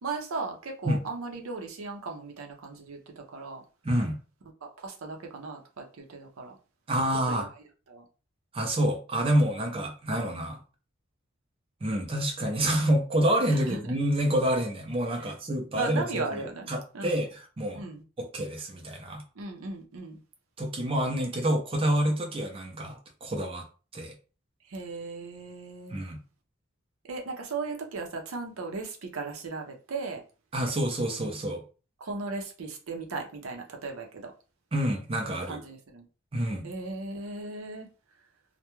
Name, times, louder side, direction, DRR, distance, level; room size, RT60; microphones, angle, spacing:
voice 1, 0.0-3.6 4.8-6.5 7.3-7.4 7.9-8.0 13.5-13.9 15.2-15.3 15.7-16.7 16.9-17.2 17.7-18.0 19.4-20.2 24.7-26.0 27.1-30.2 32.0-34.3 35.5-36.0 36.6-37.9, right 3 dB, 90° right, 0.6 m, -37 dB
voice 2, 3.8-4.2 6.9-7.5 8.5-10.6 11.8-16.4 16.7-17.8 18.2-19.2 20.6-23.0 23.2-23.7 23.9-24.1 25.9-26.2 30.5-31.6 34.7-35.6 36.3-36.7, right 1 dB, 25° right, 0.5 m, -27 dB
2.2 x 2.1 x 2.9 m
head